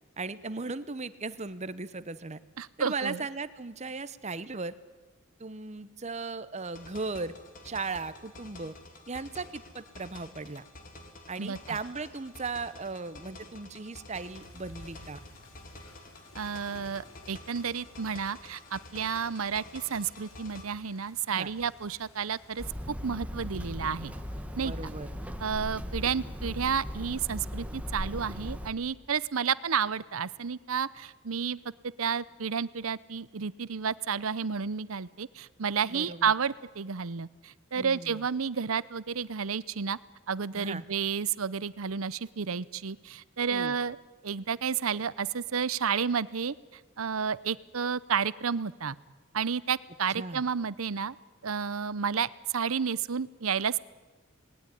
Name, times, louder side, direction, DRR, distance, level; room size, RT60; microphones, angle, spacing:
voice 1, 0.2-2.4 2.8-4.7 5.4-7.3 7.6-8.7 9.1-10.6 11.3-15.2 21.3-21.5 24.6-25.1 35.9-36.3 37.7-38.2 40.5-40.8 43.5-43.7 50.1-50.4, right 3 dB, 30° right, 14 dB, 0.9 m, -37 dB
voice 2, 2.6-3.2 11.4-11.8 16.3-24.1 24.6-24.9 25.4-31.6 32.0-40.0 40.3-44.0 44.2-49.0 49.3-51.2 51.4-53.8, right 6 dB, 85° right, 19 dB, 0.8 m, -31 dB
sound 1, 6.6-20.6, left 2 dB, 40° left, 2.9 m, -50 dB
sound 2, 14.3-22.7, left 1 dB, 90° left, 4.3 m, -54 dB
Hammer, 22.6-28.7, equal, 5° right, 1.9 m, -38 dB
27.0 x 20.0 x 9.9 m, 1.3 s
head